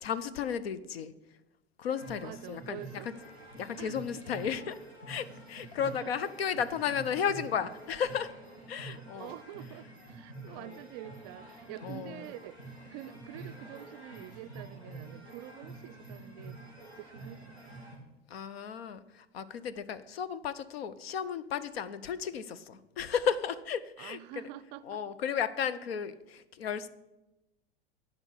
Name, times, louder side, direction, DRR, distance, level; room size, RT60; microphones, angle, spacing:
voice 1, 0.0-1.1 1.8-3.1 3.6-4.8 5.1-8.3 8.7-9.4 10.5-10.8 11.8-12.3 18.3-24.2 24.9-26.9, left 7 dB, 70° left, 0.8 m, -34 dB
sound 1, 1.9-18.0, right 2 dB, 90° left, 3.1 m, -48 dB
voice 2, 2.2-3.1 3.8-4.0 4.3-4.5 5.8-6.1 8.9-16.7 17.0-17.8 24.0-25.0, right 14 dB, 45° right, 0.5 m, -47 dB
10.5 x 5.2 x 8.3 m
figure-of-eight pair, 85°, 31 cm